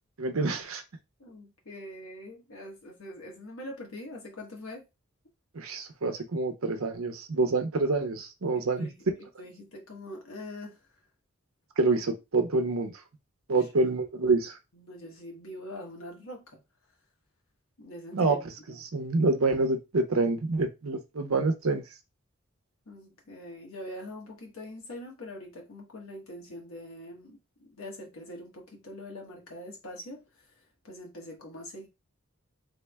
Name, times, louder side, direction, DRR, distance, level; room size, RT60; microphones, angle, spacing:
voice 1, 0.2-0.8 5.5-8.9 11.8-12.9 13.5-14.6 18.1-18.4 18.9-21.8, right 3 dB, 85° right, 0.7 m, -27 dB
voice 2, 1.2-4.8 8.5-9.0 9.4-10.8 14.7-16.6 17.8-18.4 18.7-18.8 22.9-31.9, left 1 dB, 85° left, 1.3 m, -43 dB
3.4 x 2.2 x 3.4 m
head